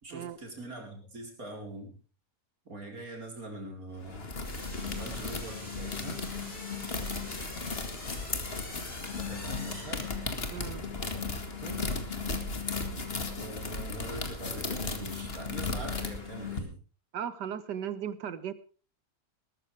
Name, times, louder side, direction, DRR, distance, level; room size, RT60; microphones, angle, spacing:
voice 1, 0.0-1.9 2.6-4.3 4.9-6.2 9.1-10.1 11.1-11.3 11.6-11.8 13.4-16.8, right 1 dB, 55° right, 2 dB, 4.8 m, -43 dB
sound 1, 4.0-16.6, left 4 dB, 35° left, 2.2 m, -35 dB
sound 2, 4.4-10.7, left 1 dB, 75° left, 7.6 m, -46 dB
voice 2, 10.5-10.8 17.1-18.5, right 9 dB, 80° right, 14 dB, 1.8 m, -36 dB
20.5 x 13.5 x 3.4 m, 0.38 s
omnidirectional pair, 1.8 m